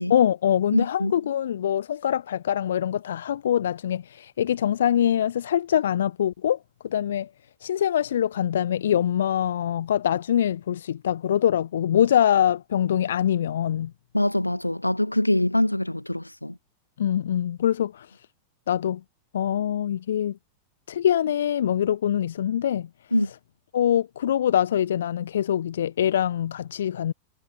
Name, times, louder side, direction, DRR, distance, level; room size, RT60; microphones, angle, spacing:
voice 1, 0.1-6.6 6.8-7.3 7.6-13.9 17.0-18.1 18.7-19.0 19.3-20.4 20.9-22.9 23.7-27.1, left 10 dB, 65° left, 0.8 m, -24 dB
voice 2, 0.7-1.1 14.1-16.6 23.1-23.3, left 1 dB, 85° left, 2.0 m, -24 dB
figure-of-eight pair, 90°, 0 cm